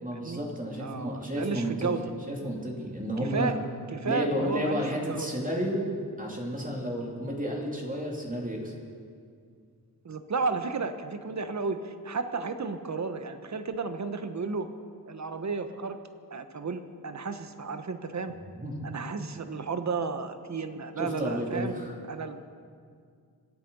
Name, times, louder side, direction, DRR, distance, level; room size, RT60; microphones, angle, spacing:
voice 1, 0.0-1.9 2.3-3.5 4.0-5.9 6.2-8.7 18.5-18.8 21.0-21.9, equal, 20° right, -1 dB, 2.7 m, -32 dB
voice 2, 0.8-2.0 3.3-3.6 3.9-5.3 10.0-14.7 15.1-16.0 16.3-18.3 18.8-21.7 22.1-22.4, right 4 dB, 45° right, 9 dB, 1.2 m, -33 dB
25.5 x 8.6 x 5.4 m, 2.2 s
cardioid pair, 75°, 38 cm